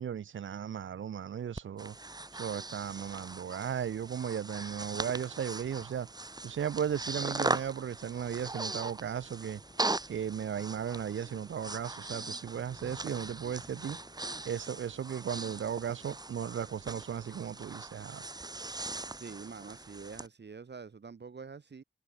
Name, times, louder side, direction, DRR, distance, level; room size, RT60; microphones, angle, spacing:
voice 1, 0.0-2.0 2.3-6.1 6.4-9.6 10.1-14.0 14.4-18.2, right 8 dB, 75° right, 0.4 m, -36 dB
Breathing, 1.6-20.3, right 2 dB, 20° right, 0.6 m, -40 dB
sound 1, 5.6-18.0, left 2 dB, 40° left, 4.2 m, -60 dB
voice 2, 19.2-21.8, right 5 dB, 60° right, 0.8 m, -46 dB
wide cardioid pair, 60°, 20 cm